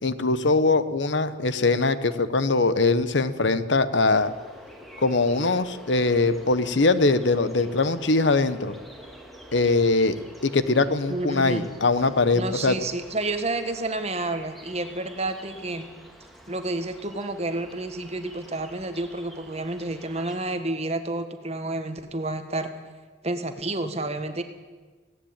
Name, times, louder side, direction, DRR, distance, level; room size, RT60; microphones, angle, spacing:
voice 1, 0.0-4.3 5.0-8.7 9.5-10.2 10.4-12.8, left 3 dB, 70° left, 13 dB, 1.0 m, -22 dB
sound 1, 4.1-20.4, equal, ahead, 2.5 m, -47 dB
voice 2, 11.1-11.7 12.3-15.9 16.5-22.7 23.2-24.4, right 2 dB, 35° right, 8 dB, 1.6 m, -30 dB
17.5 x 17.0 x 8.9 m, 1.4 s
head